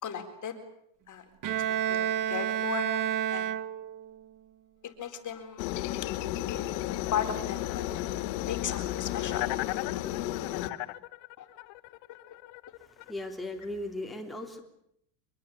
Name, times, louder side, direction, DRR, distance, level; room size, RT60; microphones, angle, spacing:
voice 1, 0.0-0.6 1.1-3.0 3.3-3.5 4.8-5.6 6.5-6.8 7.1-7.8 8.5-9.5 11.4-11.5, left 8 dB, 35° left, 6 dB, 4.2 m, -36 dB
Bowed string instrument, 1.4-4.1, right 10 dB, 40° right, 1.5 m, -30 dB
Aircraft, 5.6-10.7, left 14 dB, 85° left, 2.0 m, -33 dB
sound 1, 6.7-13.1, left 20 dB, 65° left, 1.3 m, -40 dB
voice 2, 12.8-14.6, left 1 dB, ahead, 1 dB, 3.6 m, -37 dB
24.5 x 22.5 x 8.6 m, 0.74 s
supercardioid pair, 125°, 50 cm